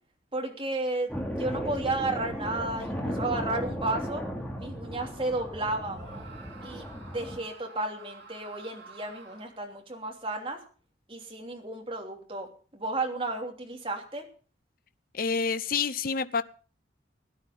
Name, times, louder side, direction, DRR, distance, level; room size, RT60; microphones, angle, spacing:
voice 1, 0.3-4.2 4.6-6.0 6.6-10.6 11.1-14.3, right 2 dB, 30° right, 3.1 m, -33 dB
sound 1, 1.1-7.4, equal, 5° left, 2.9 m, -35 dB
Screaming, 5.9-9.7, right 4 dB, 70° right, 4.3 m, -49 dB
voice 2, 15.1-16.4, left 5 dB, 50° left, 0.6 m, -28 dB
16.5 x 11.5 x 5.3 m
head